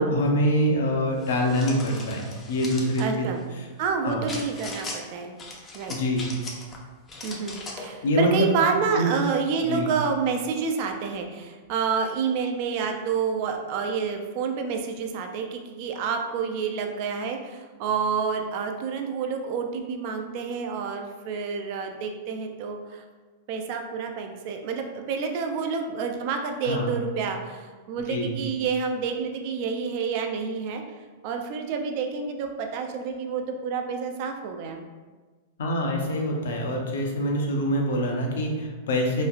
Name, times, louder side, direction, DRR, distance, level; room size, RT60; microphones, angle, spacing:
voice 1, 0.0-3.3 4.0-4.2 5.9-6.3 8.0-8.5 8.9-9.1 9.6-9.9 26.6-27.0 28.1-28.4 35.6-39.2, equal, 80° left, 1 dB, 0.6 m, -25 dB
sound 1, 1.2-3.1 4.3-5.0 5.4-6.8 7.1-7.9, left 3 dB, 20° left, 0.4 m, -39 dB
voice 2, 3.0-3.5 3.8-5.4 5.7-6.0 7.2-23.0 23.5-30.8 31.2-34.9, right 5 dB, 50° right, 4 dB, 0.3 m, -29 dB
3.0 x 2.4 x 2.3 m, 1.3 s
hypercardioid pair, 135°, 0 cm